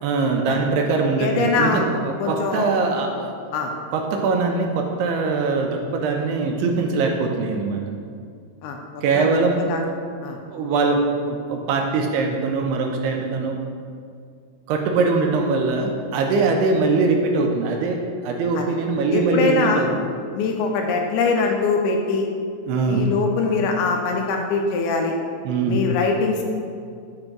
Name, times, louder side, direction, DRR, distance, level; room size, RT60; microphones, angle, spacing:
voice 1, 0.0-3.3 3.9-7.8 9.0-9.7 10.5-13.6 14.7-19.9 22.7-23.1 25.4-25.9, right 3 dB, 80° right, 2 dB, 2.5 m, -22 dB
voice 2, 1.2-1.9 2.2-2.7 3.5-3.7 8.6-8.8 9.2-9.3 9.7-9.8 10.2-10.4 18.6-18.7 19.1-19.8 20.3-22.2 22.9-25.1 25.7-26.4, left 4 dB, 80° left, 2 dB, 2.4 m, -22 dB
7.6 x 2.6 x 5.9 m, 2.2 s
omnidirectional pair, 4.8 m